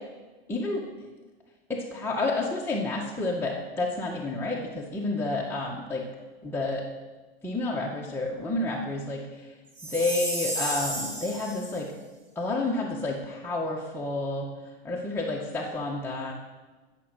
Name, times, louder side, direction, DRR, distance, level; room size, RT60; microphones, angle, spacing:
voice 1, 0.5-0.8 1.7-6.0 6.4-6.8 7.4-9.2 9.9-11.9 12.4-14.5 14.8-16.3, left 2 dB, 10° left, -4 dB, 1.8 m, -30 dB
Chime, 9.8-11.8, right 1 dB, 25° right, 4.7 m, -32 dB
16.0 x 6.8 x 7.5 m, 1.3 s
hypercardioid pair, 110°, 29 cm